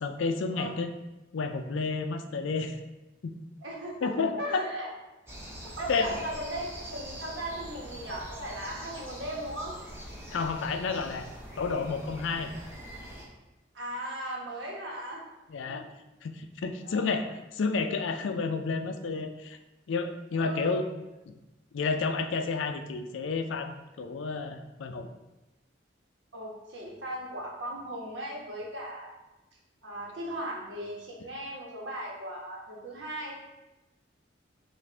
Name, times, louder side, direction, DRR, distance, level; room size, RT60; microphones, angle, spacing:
voice 1, 0.0-0.9 1.3-2.8 3.2-3.3 4.0-4.6 5.9-6.1 10.3-11.3 11.6-12.5 15.5-15.9 16.2-19.6 19.9-20.9 21.3-21.4 21.7-25.1, left 4 dB, 80° left, 7 dB, 0.4 m, -31 dB
voice 2, 3.6-4.1 4.4-4.9 5.8-9.7 13.7-15.2 15.7-15.8 16.8-17.1 20.3-20.8 26.3-29.1 29.8-33.4, right 1 dB, 75° right, -2 dB, 1.1 m, -37 dB
sound 1, 5.3-13.2, equal, 15° right, 0.7 m, -44 dB
5.9 x 2.5 x 3.3 m, 1.0 s
head